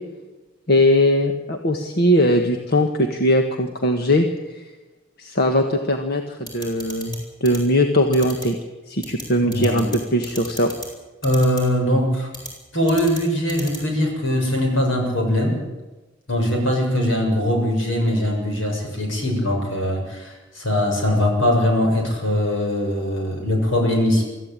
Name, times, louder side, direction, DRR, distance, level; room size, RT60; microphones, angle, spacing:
voice 1, 0.7-4.7 5.2-8.5 8.9-10.7, left 1 dB, 55° left, 4 dB, 1.6 m, -20 dB
sound 1, 6.5-7.2 7.4-7.6 8.1-8.4 9.0-9.2 9.5-10.0 10.2-10.9 11.2-11.6 12.3-12.5 12.9-13.2 13.5-13.8, equal, 20° left, 7.3 m, -34 dB
voice 2, 9.4-9.8 11.2-12.3 12.7-15.6 16.3-24.2, left 1 dB, 75° left, 1 dB, 7.1 m, -21 dB
25.0 x 14.5 x 9.0 m, 1.1 s
head